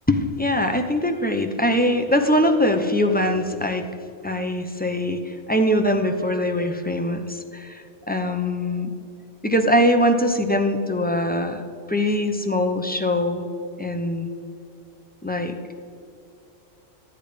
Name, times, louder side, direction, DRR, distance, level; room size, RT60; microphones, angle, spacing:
voice 1, 0.1-3.9 4.2-8.9 9.4-11.6 11.9-13.4 13.8-14.3 15.2-15.5, left 1 dB, 10° left, 5 dB, 0.5 m, -22 dB
13.0 x 8.5 x 5.2 m, 2.6 s
omnidirectional pair, 1.4 m